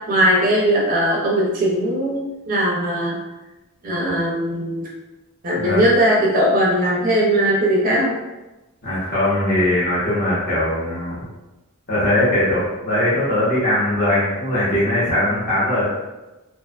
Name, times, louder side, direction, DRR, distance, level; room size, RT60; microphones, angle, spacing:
voice 1, 0.1-3.2 3.8-4.9 5.4-8.1, equal, 40° right, -3 dB, 0.4 m, -19 dB
voice 2, 8.8-11.1 11.9-15.9, left 1 dB, 40° left, -10 dB, 0.8 m, -20 dB
2.5 x 2.3 x 2.2 m, 1.1 s
head